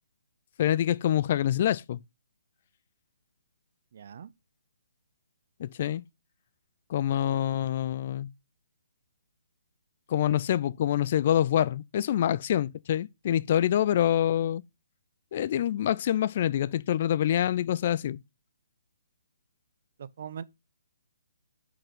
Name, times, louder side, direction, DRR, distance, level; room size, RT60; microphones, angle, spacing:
voice 1, 0.6-2.0 5.6-6.0 6.9-8.3 10.1-14.6 15.3-18.2, left 11 dB, 40° left, 0.4 m, -26 dB
voice 2, 3.9-4.3 20.0-20.4, right 8 dB, 50° right, 0.6 m, -41 dB
8.7 x 4.8 x 3.8 m
figure-of-eight pair, 135°, 0 cm